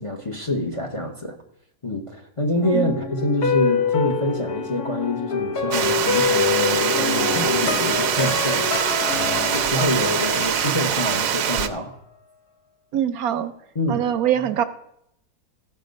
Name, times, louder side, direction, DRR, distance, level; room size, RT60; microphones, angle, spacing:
voice 1, 0.0-1.4 1.8-11.9 13.7-14.4, left 1 dB, 25° left, 3 dB, 0.9 m, -26 dB
sound 1, 2.6-11.6 11.9-12.0, left 5 dB, 70° left, 1.6 m, -26 dB
Water, 5.7-11.7, right 9 dB, 90° right, 1.3 m, -23 dB
sound 2, 6.7-10.9, left 3 dB, 50° left, 0.4 m, -34 dB
voice 2, 12.9-13.5 13.9-14.6, right 10 dB, 70° right, 12 dB, 1.1 m, -23 dB
15.0 x 6.1 x 5.2 m, 0.75 s
omnidirectional pair, 1.7 m